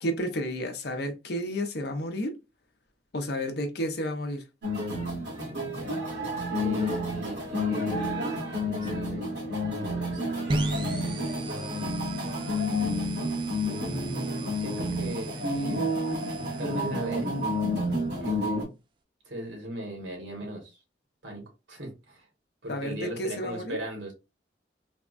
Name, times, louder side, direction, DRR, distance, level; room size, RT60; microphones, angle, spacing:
voice 1, 0.0-2.3 3.1-4.4 22.7-23.8, equal, 60° left, 0.7 m, -31 dB
sound 1, 4.6-18.6, left 1 dB, 65° right, 1.7 m, -30 dB
voice 2, 6.5-7.9 8.6-10.7 11.0-11.3 13.8-15.9 16.6-17.3 18.2-18.7 19.2-20.8 21.2-22.3 22.6-24.1, right 1 dB, 90° right, 1.5 m, -38 dB
sound 2, 10.5-18.1, right 2 dB, 25° right, 0.3 m, -36 dB
3.5 x 2.1 x 2.4 m
head